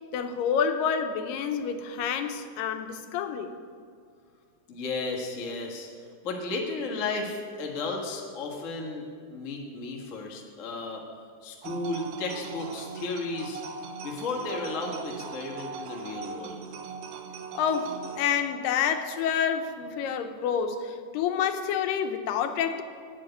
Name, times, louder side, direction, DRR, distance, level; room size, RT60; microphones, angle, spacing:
voice 1, 0.1-3.5 17.5-22.8, left 7 dB, 80° left, 8 dB, 2.4 m, -28 dB
voice 2, 4.7-5.9 6.2-11.0 11.4-13.6 14.0-16.6, left 3 dB, 65° left, -1 dB, 0.7 m, -34 dB
sound 1, 11.6-18.2, right 5 dB, 75° right, 2.4 m, -39 dB
9.0 x 8.7 x 8.8 m, 2.2 s
omnidirectional pair, 4.0 m